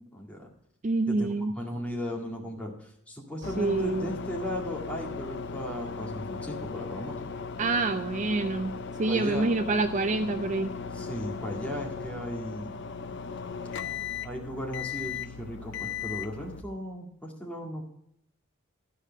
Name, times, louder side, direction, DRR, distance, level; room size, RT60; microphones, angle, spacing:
voice 1, 0.1-0.5 1.1-7.3 9.1-9.5 10.9-12.8 14.2-17.8, equal, 5° left, -1 dB, 2.0 m, -36 dB
voice 2, 0.8-1.5 3.6-4.1 7.6-8.7 9.0-10.7, right 3 dB, 35° right, 10 dB, 0.4 m, -27 dB
sound 1, 3.4-16.6, left 5 dB, 55° left, 0.5 m, -37 dB
13.0 x 4.9 x 6.4 m, 0.78 s
head